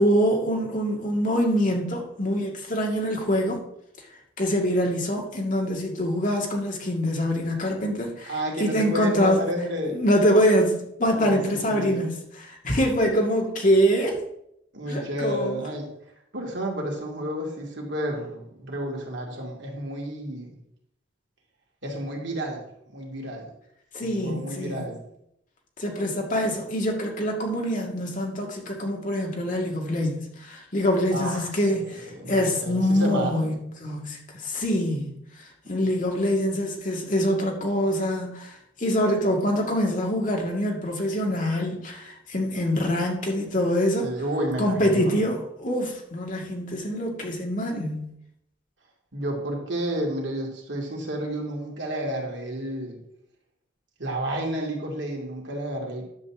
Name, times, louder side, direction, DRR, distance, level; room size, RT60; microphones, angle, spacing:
voice 1, 0.0-3.6 4.4-9.5 9.9-14.2 14.9-15.6 23.9-24.8 25.8-35.2 35.7-44.1 44.6-48.1, equal, 40° left, 0 dB, 2.0 m, -25 dB
voice 2, 8.3-10.0 11.2-11.4 11.7-12.1 14.7-15.9 16.3-20.5 21.8-22.7 22.9-23.5 24.0-25.0 31.1-33.5 35.6-35.7 44.0-45.2 49.1-53.0 54.0-56.1, right 1 dB, 60° right, 0 dB, 2.5 m, -31 dB
10.5 x 4.2 x 7.2 m, 0.76 s
head